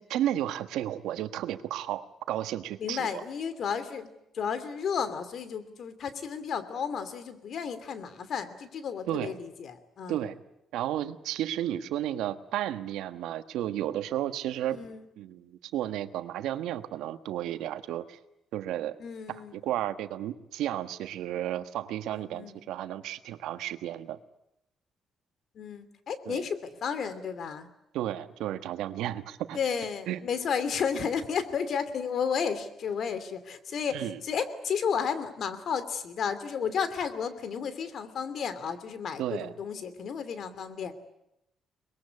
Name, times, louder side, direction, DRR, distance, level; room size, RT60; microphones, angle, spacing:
voice 1, 0.0-3.2 9.1-9.3 10.1-10.3 10.7-14.8 15.2-18.2 18.5-19.0 19.3-24.2 26.3-26.4 27.9-29.6 30.1-30.2 33.9-34.2 39.2-39.5, right 12 dB, 90° right, 11 dB, 1.3 m, -33 dB
voice 2, 2.8-4.1 4.3-10.2 14.8-15.0 19.0-19.6 22.1-22.5 25.5-27.7 29.5-40.9, left 6 dB, 60° left, 13 dB, 2.8 m, -32 dB
24.0 x 21.0 x 9.7 m, 0.84 s
cardioid pair, 90°, 0 cm